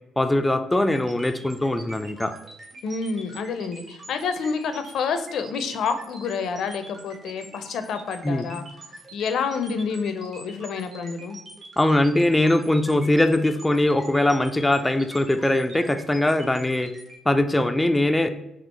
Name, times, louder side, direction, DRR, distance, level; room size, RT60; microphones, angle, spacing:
voice 1, 0.2-2.3 8.2-8.5 11.8-16.9 17.3-18.3, left 1 dB, 10° left, 7 dB, 0.3 m, -21 dB
sound 1, 0.8-17.1, right 2 dB, 50° right, 1.3 m, -45 dB
voice 2, 2.8-8.6 9.1-11.4, left 5 dB, 75° left, 9 dB, 0.5 m, -28 dB
4.4 x 2.4 x 4.4 m, 0.89 s
cardioid pair, 90°, 0 cm